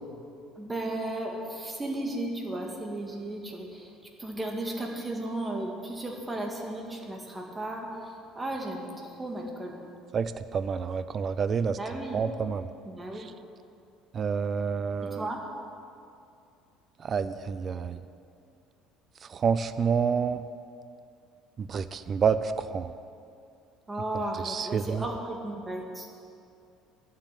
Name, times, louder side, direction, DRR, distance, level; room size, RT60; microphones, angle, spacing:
voice 1, 0.6-3.9 4.2-7.9 8.4-9.9 11.7-12.2 12.8-13.3 15.0-15.4 23.9-26.1, right 1 dB, 15° right, 1 dB, 1.8 m, -35 dB
voice 2, 10.1-11.8 12.1-12.7 14.1-15.3 17.0-18.0 19.3-20.4 21.6-22.9 24.4-25.0, right 6 dB, 35° right, 12 dB, 0.4 m, -28 dB
11.0 x 7.4 x 9.8 m, 2.5 s
cardioid pair, 140°, 0 cm